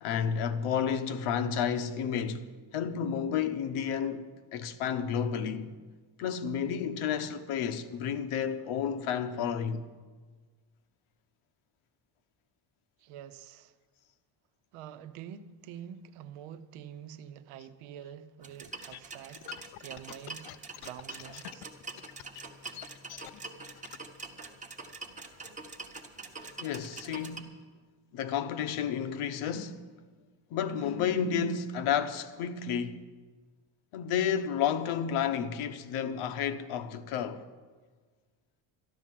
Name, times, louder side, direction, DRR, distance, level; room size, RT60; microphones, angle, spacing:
voice 1, 0.0-5.7 6.2-9.8 26.6-27.6 28.1-29.8 30.5-33.0 33.9-37.4, left 8 dB, 80° left, 1.1 m, -31 dB
voice 2, 13.0-13.7 14.7-19.5 19.8-20.5 20.8-21.7, right 9 dB, 80° right, 0.9 m, -46 dB
sound 1, 18.4-27.4, right 3 dB, 15° right, 1.0 m, -45 dB
sound 2, 18.7-24.0, left 14 dB, 50° left, 0.5 m, -46 dB
13.0 x 11.0 x 7.6 m
cardioid pair, 175°, 50 cm